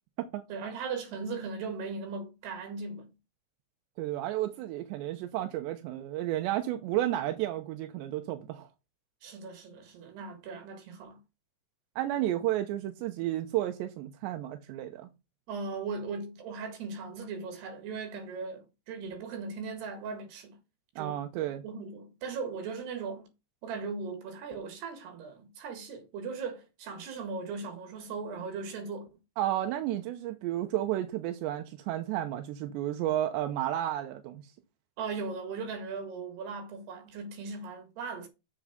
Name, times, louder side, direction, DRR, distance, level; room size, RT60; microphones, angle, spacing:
voice 1, 0.5-3.1 9.2-11.2 15.5-20.6 21.0-23.3 23.6-29.1 35.0-38.3, right 4 dB, 70° right, 3.8 m, -38 dB
voice 2, 4.0-8.7 12.0-15.1 21.0-21.6 29.4-34.4, right 13 dB, 85° right, 3.1 m, -32 dB
7.3 x 6.8 x 5.1 m
omnidirectional pair, 5.0 m